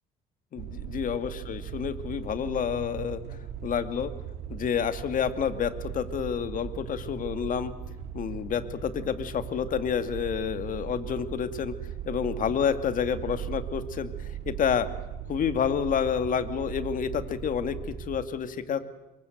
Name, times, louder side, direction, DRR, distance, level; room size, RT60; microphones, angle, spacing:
voice 1, 0.5-3.2 3.6-4.1 4.5-7.7 8.1-11.7 12.0-14.1 14.5-14.9 15.3-18.8, left 7 dB, 50° left, 10 dB, 2.2 m, -29 dB
sound 1, 0.6-18.2, right 9 dB, 75° right, 3.7 m, -39 dB
28.5 x 23.5 x 8.0 m, 1.0 s
cardioid pair, 110°, 17 cm